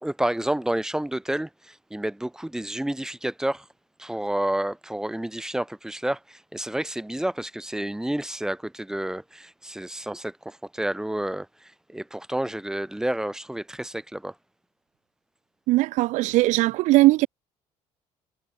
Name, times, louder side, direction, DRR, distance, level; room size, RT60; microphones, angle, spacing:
voice 1, 0.0-3.7 4.0-14.3, right 1 dB, 5° right, 3.1 m, -30 dB
voice 2, 15.7-17.3, right 19 dB, 80° right, 0.9 m, -19 dB
cardioid pair, 125°, 12 cm